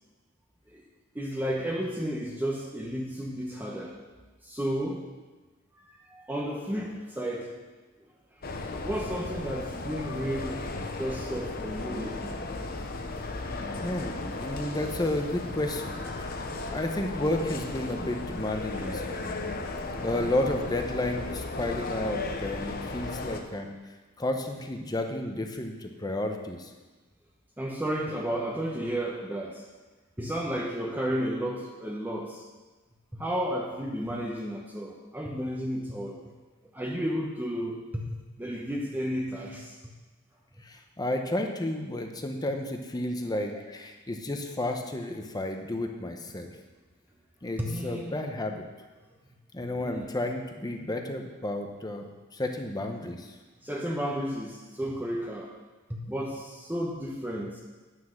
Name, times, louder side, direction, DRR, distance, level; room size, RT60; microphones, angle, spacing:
voice 1, 1.1-4.0 4.4-5.1 5.7-7.5 8.8-10.6 11.0-12.4 18.7-19.1 23.2-23.3 27.6-29.7 30.2-32.5 33.1-36.2 36.7-39.8 40.6-40.7 47.6-48.2 49.7-50.1 53.6-55.5 55.9-57.6, equal, 10° right, -2 dB, 0.9 m, -33 dB
sound 1, 8.4-23.4, left 3 dB, 45° left, 0.9 m, -35 dB
voice 2, 13.8-16.4 16.7-19.3 20.0-23.7 24.2-26.7 40.6-46.5 47.4-48.6 49.5-52.1 52.3-53.3, left 1 dB, 20° left, 4 dB, 0.9 m, -32 dB
9.4 x 6.0 x 6.5 m, 1.3 s
head